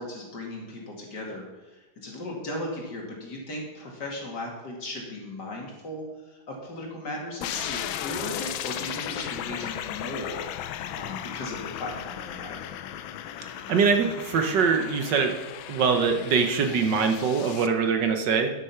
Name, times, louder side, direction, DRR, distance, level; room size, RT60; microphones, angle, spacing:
voice 1, 0.0-1.4 1.7-6.0 6.3-10.5 10.9-12.7, left 1 dB, 55° left, -1 dB, 2.8 m, -36 dB
sound 1, 7.4-17.7, left 11 dB, 80° left, 1.4 m, -36 dB
voice 2, 13.7-15.3 15.7-18.5, right 5 dB, 65° right, 5 dB, 1.5 m, -23 dB
9.9 x 8.1 x 5.7 m, 1.1 s
omnidirectional pair, 2.1 m